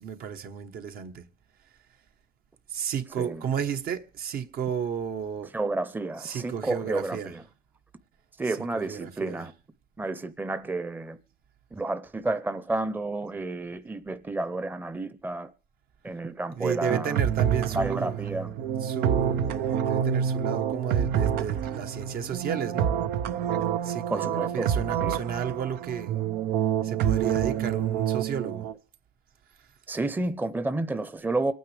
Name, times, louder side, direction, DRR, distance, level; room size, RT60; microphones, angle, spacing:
voice 1, 0.0-1.3 2.7-5.5 6.2-7.3 8.7-9.4 16.5-18.2 18.8-22.9 23.8-26.1 26.8-28.7, right 7 dB, 65° right, 1.3 m, -32 dB
voice 2, 5.5-7.4 8.4-9.5 10.0-11.2 11.7-15.5 16.0-17.2 17.7-18.6 24.1-24.7 25.0-25.2 29.9-31.5, right 2 dB, 10° right, 0.7 m, -31 dB
sound 1, 16.9-28.7, right 9 dB, 90° right, 0.9 m, -27 dB
26.0 x 9.3 x 3.4 m
cardioid pair, 110°, 17 cm